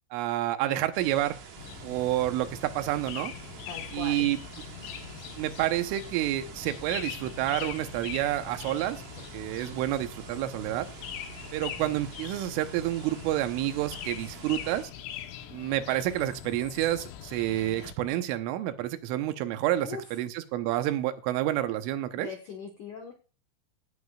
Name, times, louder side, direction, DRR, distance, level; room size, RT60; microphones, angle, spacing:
voice 1, 0.1-1.4 1.8-3.3 3.9-4.4 5.4-10.9 11.5-14.9 15.5-22.3, right 14 dB, 80° right, 8 dB, 3.4 m, -29 dB
sound 1, 0.9-14.8, right 5 dB, 60° right, 2.4 m, -47 dB
sound 2, 1.6-17.9, left 10 dB, 85° left, 3.7 m, -42 dB
voice 2, 3.7-4.3 19.8-20.2 22.2-23.1, left 5 dB, 65° left, 3 dB, 2.0 m, -40 dB
17.0 x 8.0 x 2.4 m, 0.36 s
omnidirectional pair, 5.7 m